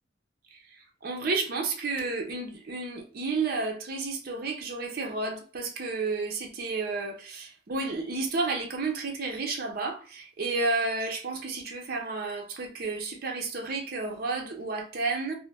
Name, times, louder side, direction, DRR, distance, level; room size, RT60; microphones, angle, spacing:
voice 1, 0.5-15.4, right 3 dB, 60° right, 0.6 m, -31 dB
2.5 x 2.0 x 3.1 m
head